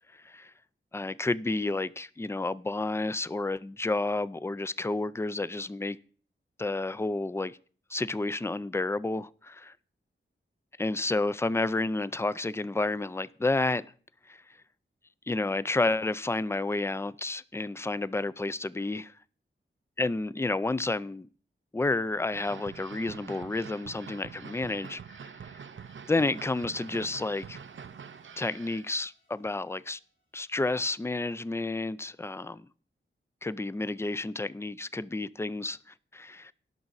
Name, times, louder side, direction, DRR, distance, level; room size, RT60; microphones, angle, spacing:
voice 1, 0.1-0.5 0.9-6.0 6.6-7.6 7.9-9.7 10.8-13.9 14.3-14.4 15.3-19.1 20.0-21.3 21.7-25.3 26.1-27.6 28.4-30.0 30.3-32.7 33.4-35.8 36.1-36.5, left 2 dB, 10° left, 0.4 m, -30 dB
sound 1, 22.3-28.9, right 6 dB, 70° right, 0.6 m, -45 dB
sound 2, 25.6-30.8, equal, 70° left, 4.9 m, -67 dB
17.5 x 5.9 x 4.0 m
wide cardioid pair, 95°, 21 cm